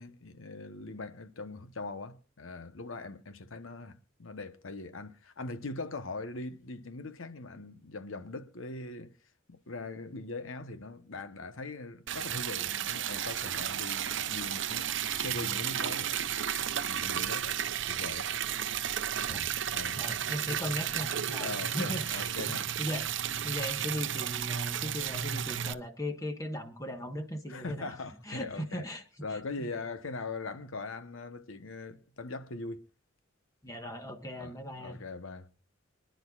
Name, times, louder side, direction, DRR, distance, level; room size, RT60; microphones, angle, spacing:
voice 1, 0.0-9.1 9.5-16.3 16.9-18.3 19.7-20.0 21.4-22.7 27.5-28.9 29.2-32.8 34.4-35.5, left 3 dB, 85° left, 1.0 m, -41 dB
Liquid, 12.1-25.7, right 9 dB, 60° right, 0.7 m, -33 dB
voice 2, 20.0-23.0 23.4-27.9 28.3-29.0 33.6-35.0, equal, 15° left, 1.3 m, -38 dB
26.0 x 10.5 x 2.4 m
head